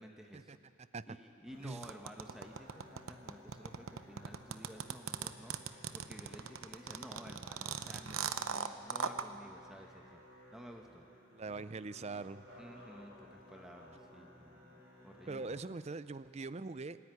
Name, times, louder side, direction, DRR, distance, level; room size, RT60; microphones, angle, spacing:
voice 1, 0.0-0.8 1.1-10.2 10.5-11.0 12.6-15.8, equal, ahead, 3 dB, 1.0 m, -53 dB
Musical instrument, 1.4-15.5, equal, 45° right, 5.6 m, -58 dB
sound 1, 1.8-9.2, right 6 dB, 80° right, 0.8 m, -39 dB
voice 2, 11.3-12.5 15.3-17.0, right 3 dB, 30° right, 14 dB, 0.5 m, -42 dB
26.0 x 11.0 x 9.7 m, 2.4 s
head